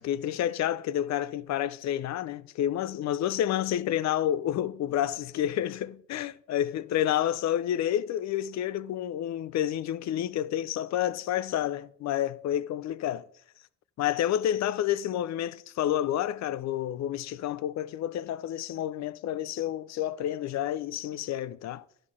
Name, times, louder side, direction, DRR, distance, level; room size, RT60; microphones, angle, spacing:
voice 1, 0.0-13.2 14.0-21.8, left 11 dB, 65° left, 0.5 m, -29 dB
10.5 x 3.8 x 6.2 m
cardioid pair, 90°, 30 cm